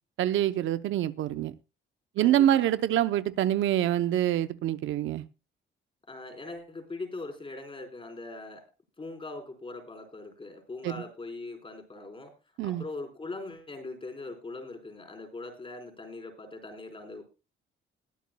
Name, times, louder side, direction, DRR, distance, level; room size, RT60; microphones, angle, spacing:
voice 1, 0.2-1.5 2.2-5.2 10.8-10.9 12.6-12.8, right 12 dB, 80° right, 0.7 m, -26 dB
voice 2, 2.2-2.7 6.1-8.6 9.0-12.3 12.6-17.2, left 2 dB, 25° left, 4.1 m, -41 dB
21.0 x 8.3 x 2.2 m
cardioid pair, 90°, 20 cm